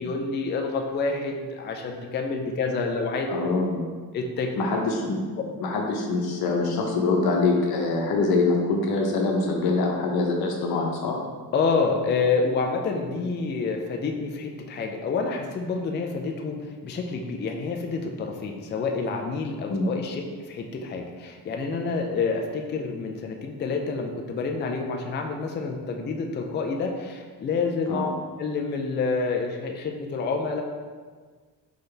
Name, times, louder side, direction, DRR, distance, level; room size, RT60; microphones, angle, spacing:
voice 1, 0.0-3.3 4.1-4.5 11.5-28.1 28.4-30.6, left 4 dB, 30° left, 2 dB, 0.4 m, -28 dB
voice 2, 3.3-3.9 4.6-11.2 13.1-13.2 19.7-19.9 27.9-28.1, left 3 dB, 80° left, 0 dB, 0.9 m, -24 dB
4.0 x 3.8 x 3.3 m, 1.5 s
cardioid pair, 130°, 37 cm